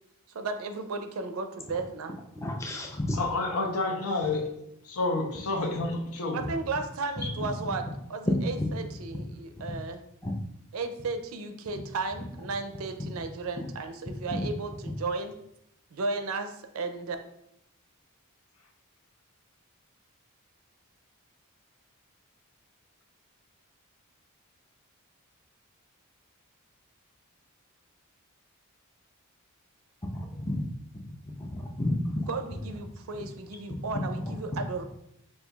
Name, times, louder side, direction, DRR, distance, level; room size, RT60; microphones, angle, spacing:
voice 1, 0.3-2.1 6.3-10.0 10.7-15.3 15.9-17.2 32.3-34.8, right 3 dB, 65° right, 7 dB, 0.4 m, -34 dB
voice 2, 2.4-3.2 10.2-10.3 14.3-14.4 30.1-30.6 31.8-32.2, left 1 dB, 15° left, 1 dB, 0.4 m, -30 dB
voice 3, 3.1-4.5 4.8-6.4, left 2 dB, 75° left, 2 dB, 0.7 m, -29 dB
5.4 x 2.6 x 2.3 m, 0.78 s
head